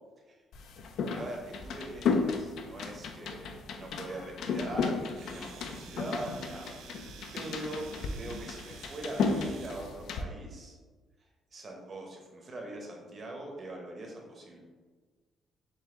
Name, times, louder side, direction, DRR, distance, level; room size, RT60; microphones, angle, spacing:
sound 1, 0.5-10.2, left 4 dB, 75° left, 0.4 m, -34 dB
voice 1, 1.1-7.1 7.3-10.8 11.2-14.6, right 1 dB, 45° right, 0 dB, 0.9 m, -42 dB
Domestic sounds home sounds, 5.1-9.9, right 7 dB, 80° right, 0.3 m, -51 dB
4.0 x 2.6 x 3.7 m, 1.4 s
cardioid pair, 90°, 0 cm